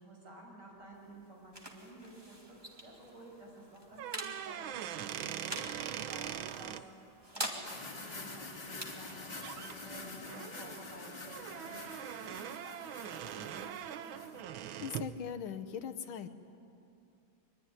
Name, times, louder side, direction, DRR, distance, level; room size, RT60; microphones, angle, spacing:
voice 1, 0.0-2.4 2.6-14.3, right 2 dB, 55° right, -1 dB, 7.2 m, -53 dB
sound 1, 0.7-12.1, right 1 dB, 10° right, 2.4 m, -47 dB
sound 2, 3.9-6.8 9.0-9.1 9.4-9.8 10.3-15.2, right 10 dB, 85° right, 1.6 m, -42 dB
sound 3, 7.6-14.4, left 3 dB, 30° left, 2.5 m, -47 dB
voice 2, 14.8-16.3, left 8 dB, 85° left, 8 dB, 1.9 m, -40 dB
24.5 x 22.5 x 9.9 m, 2.6 s
omnidirectional pair, 2.2 m